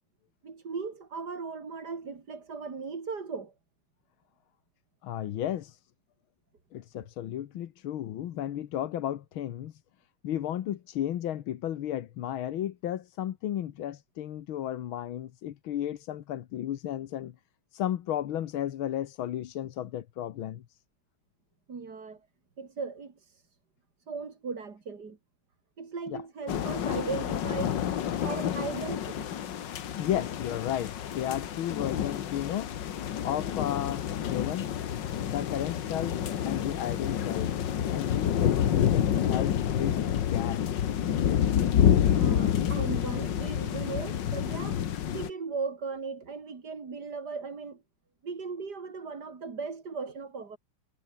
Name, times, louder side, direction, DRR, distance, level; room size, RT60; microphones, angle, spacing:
voice 1, 0.4-3.5 21.7-22.2 22.6-23.2 24.1-25.2 25.8-27.8 28.2-29.3 42.1-44.8 45.1-47.8 48.2-50.6, right 4 dB, 50° right, 3.2 m, -37 dB
voice 2, 5.0-5.8 6.7-9.8 10.2-17.4 17.7-20.8 26.1-26.2 28.5-28.7 29.9-34.7 35.3-37.6 37.9-40.6, left 11 dB, 80° left, 1.9 m, -34 dB
sound 1, 26.5-45.3, left 9 dB, 65° left, 1.8 m, -28 dB
omnidirectional pair, 2.3 m